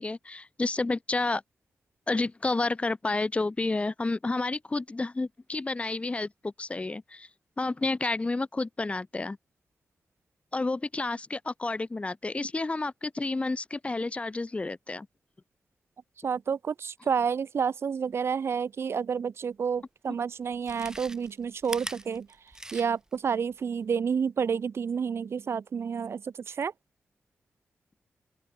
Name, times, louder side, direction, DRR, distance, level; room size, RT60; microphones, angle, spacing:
voice 1, 0.0-1.4 2.1-7.3 7.6-9.4 10.5-15.1, left 3 dB, 25° left, 6.2 m, -30 dB
voice 2, 16.2-22.3 22.7-26.7, right 6 dB, 65° right, 2.6 m, -30 dB
Chewing mastication, 19.8-19.9 20.5-23.2 23.5-23.6, right 1 dB, 15° right, 6.2 m, -41 dB
open air
wide cardioid pair, 100°, 5 cm